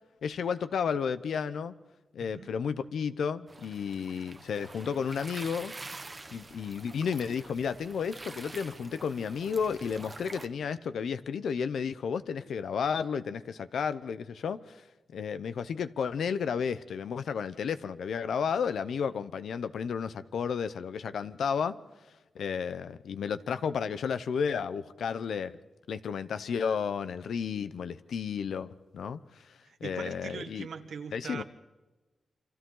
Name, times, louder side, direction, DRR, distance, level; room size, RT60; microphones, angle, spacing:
voice 1, 0.2-1.7 2.1-5.7 6.3-14.8 15.1-21.8 22.3-25.6 25.9-30.7 31.1-31.4, left 6 dB, 90° left, 0.8 m, -32 dB
voice 2, 2.2-2.5 29.6-31.4, right 6 dB, 80° right, 1.6 m, -41 dB
sound 1, 3.5-10.5, right 3 dB, 25° right, 1.2 m, -46 dB
28.5 x 25.0 x 3.9 m
wide cardioid pair, 110°, 0 cm